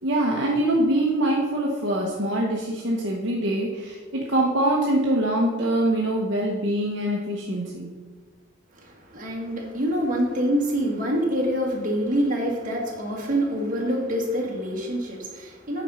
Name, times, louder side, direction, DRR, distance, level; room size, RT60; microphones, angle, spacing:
voice 1, 0.0-7.9, right 1 dB, 55° right, -2 dB, 1.1 m, -24 dB
voice 2, 8.8-15.8, equal, 40° right, -1 dB, 1.8 m, -26 dB
9.0 x 5.2 x 5.6 m, 1.4 s
head